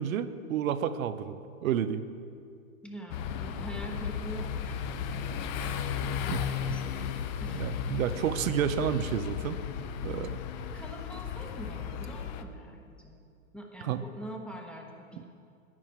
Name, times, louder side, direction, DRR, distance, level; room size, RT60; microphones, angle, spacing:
voice 1, 0.0-2.0 6.2-6.8 7.5-9.6 10.0-10.4 13.8-14.0 15.2-15.3, right 9 dB, 80° right, 11 dB, 0.7 m, -31 dB
voice 2, 2.8-7.1 7.4-7.9 10.6-13.2 13.5-15.2, equal, 5° left, 0 dB, 0.9 m, -45 dB
sound 1, 3.1-12.4, left 7 dB, 35° left, 0.5 m, -35 dB
10.5 x 9.0 x 4.4 m, 2.4 s
hypercardioid pair, 135°, 41 cm